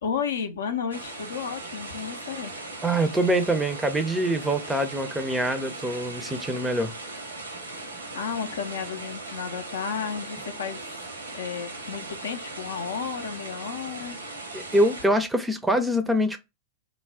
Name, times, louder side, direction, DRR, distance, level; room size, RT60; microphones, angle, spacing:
voice 1, 0.0-2.5 7.9-11.0 11.3-14.2, left 6 dB, 70° left, 0.5 m, -32 dB
sound 1, 0.9-15.1, right 2 dB, 80° right, 0.7 m, -38 dB
voice 2, 2.8-6.9 14.5-16.4, right 1 dB, 10° right, 0.5 m, -24 dB
2.3 x 2.0 x 3.5 m
figure-of-eight pair, 90°, 0 cm